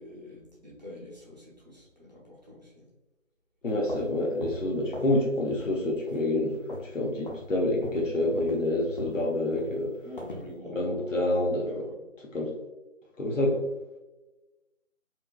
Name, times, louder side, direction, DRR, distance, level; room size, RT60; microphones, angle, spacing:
voice 1, 0.0-2.9 10.0-11.2 11.6-12.0, left 1 dB, 30° right, -6 dB, 0.9 m, -46 dB
voice 2, 3.6-10.0 10.7-11.9 12.2-12.5 13.2-13.6, left 1 dB, 70° left, -1 dB, 0.9 m, -28 dB
sound 1, 3.7-5.2 5.5-5.8 6.1-7.0 7.2-7.5 7.8-10.5, left 1 dB, 40° left, 0.6 m, -40 dB
4.4 x 2.3 x 2.2 m, 1.1 s
figure-of-eight pair, 160°, 39 cm